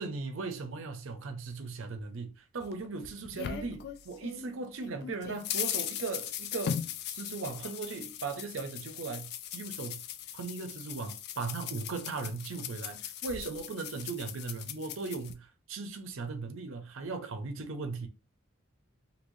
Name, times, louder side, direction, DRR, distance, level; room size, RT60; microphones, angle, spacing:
voice 1, 0.0-6.8 7.1-10.0 10.3-18.1, right 4 dB, 70° right, 0.5 m, -38 dB
sound 1, 2.6-4.5 4.8-15.3, left 9 dB, 50° left, 0.3 m, -39 dB
3.1 x 2.7 x 2.6 m
head